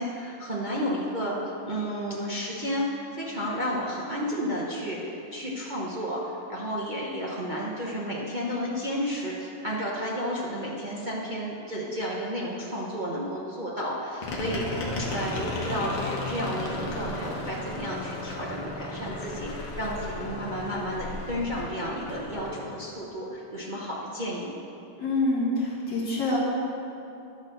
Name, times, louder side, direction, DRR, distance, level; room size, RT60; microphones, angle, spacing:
voice 1, 0.0-1.4 1.7-24.5, equal, 55° right, -5 dB, 0.5 m, -32 dB
sound 1, 14.2-22.5, left 2 dB, 70° left, 1.9 m, -34 dB
voice 2, 25.0-26.4, left 2 dB, 50° left, -5 dB, 2.2 m, -26 dB
11.0 x 4.4 x 6.4 m, 2.7 s
omnidirectional pair, 2.3 m